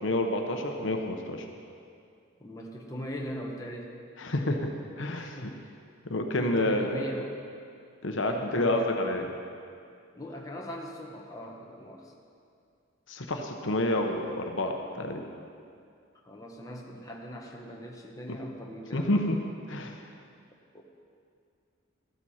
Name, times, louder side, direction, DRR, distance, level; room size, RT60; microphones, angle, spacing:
voice 1, 0.0-1.5 4.2-4.6 5.0-5.4 6.1-7.0 8.0-9.3 13.1-15.2 18.3-18.4 18.9-19.4 19.7-20.0, left 1 dB, 65° left, 3 dB, 0.9 m, -29 dB
voice 2, 2.4-4.0 5.1-5.7 6.3-7.4 8.2-8.9 10.1-12.1 16.2-19.1 20.7-20.8, equal, 15° left, -1 dB, 1.2 m, -40 dB
13.5 x 12.0 x 4.3 m, 2.4 s
head